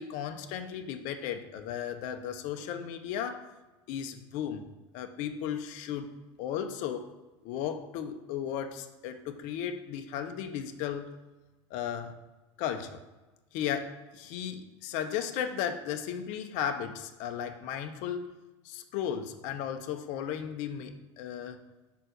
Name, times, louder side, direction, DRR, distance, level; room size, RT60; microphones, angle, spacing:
voice 1, 0.0-3.4 3.9-4.7 4.9-6.1 6.4-7.1 7.4-11.1 11.7-12.2 12.6-13.0 13.5-18.4 18.6-21.6, left 9 dB, 60° left, 7 dB, 0.8 m, -35 dB
5.6 x 4.4 x 6.3 m, 1.1 s
hypercardioid pair, 80°, 15 cm